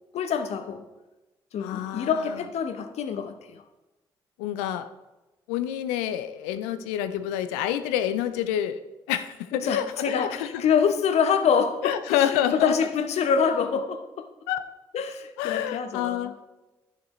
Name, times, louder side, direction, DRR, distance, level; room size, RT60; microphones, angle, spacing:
voice 1, 0.1-0.8 1.5-3.6 9.5-14.3 14.9-16.3, left 6 dB, 65° left, 8 dB, 0.9 m, -26 dB
voice 2, 1.6-2.2 4.4-4.9 5.5-8.8 9.1-10.6 11.8-12.7 14.5-14.6 15.4-16.4, left 11 dB, 80° left, 12 dB, 0.5 m, -28 dB
11.5 x 7.4 x 3.2 m, 1.1 s
hypercardioid pair, 40°, 12 cm